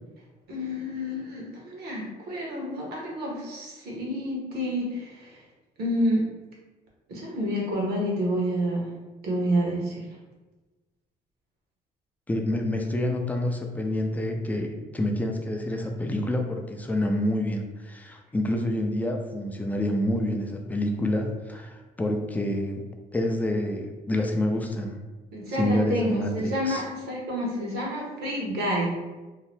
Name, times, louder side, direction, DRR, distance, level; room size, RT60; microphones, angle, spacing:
voice 1, 0.5-5.4 5.8-6.2 7.1-8.9 9.2-10.0 25.3-28.9, equal, 70° right, -2 dB, 1.0 m, -29 dB
voice 2, 12.3-22.8 23.1-25.0 25.6-26.8, left 1 dB, 10° left, 3 dB, 0.3 m, -27 dB
2.8 x 2.1 x 3.2 m, 1.2 s
cardioid pair, 110°, 17 cm